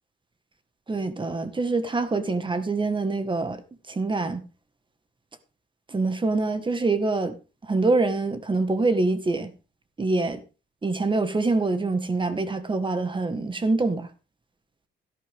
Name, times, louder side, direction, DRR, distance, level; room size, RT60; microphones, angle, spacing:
voice 1, 0.9-3.6 3.9-4.4 5.9-7.4 7.6-9.5 10.0-10.4 10.8-14.1, right 3 dB, 25° right, 1.8 m, -25 dB
13.5 x 11.5 x 3.7 m
cardioid pair, 90°, 20 cm